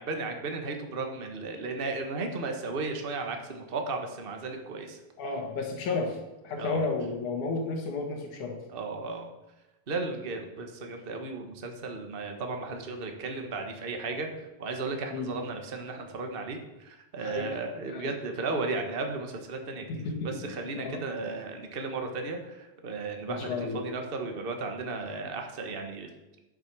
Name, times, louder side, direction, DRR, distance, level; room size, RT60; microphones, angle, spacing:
voice 1, 0.0-5.0 6.6-6.9 8.7-9.3 9.9-26.1, right 3 dB, 50° right, 4 dB, 0.6 m, -35 dB
voice 2, 5.2-8.6 15.1-15.3 17.2-17.6 17.9-18.1 19.9-21.0 23.3-23.8, left 3 dB, 75° left, 2 dB, 3.1 m, -33 dB
11.0 x 8.0 x 6.2 m, 1.0 s
omnidirectional pair, 3.5 m